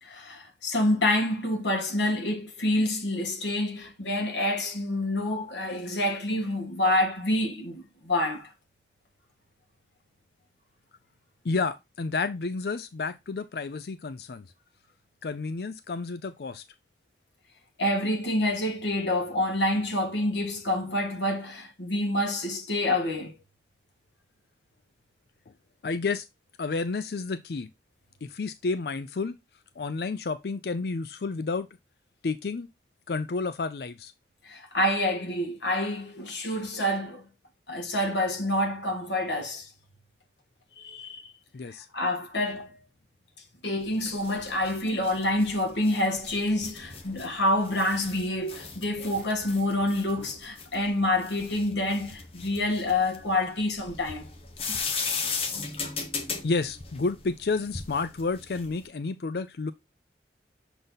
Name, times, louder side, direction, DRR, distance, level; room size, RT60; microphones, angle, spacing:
voice 1, 0.0-8.5 17.8-23.4 34.4-37.3 37.7-39.7 40.8-41.3 41.9-42.8 43.6-54.3 54.7-54.8 56.4-56.5, left 1 dB, 80° left, 1.9 m, -27 dB
voice 2, 11.4-14.5 15.2-16.6 25.8-26.3 26.6-27.7 28.2-29.4 29.8-31.7 32.2-32.7 33.1-34.1 41.5-41.9 56.4-59.7, left 4 dB, 60° left, 0.5 m, -30 dB
sound 1, 43.8-58.8, left 5 dB, 30° left, 1.0 m, -37 dB
6.5 x 4.0 x 3.9 m
head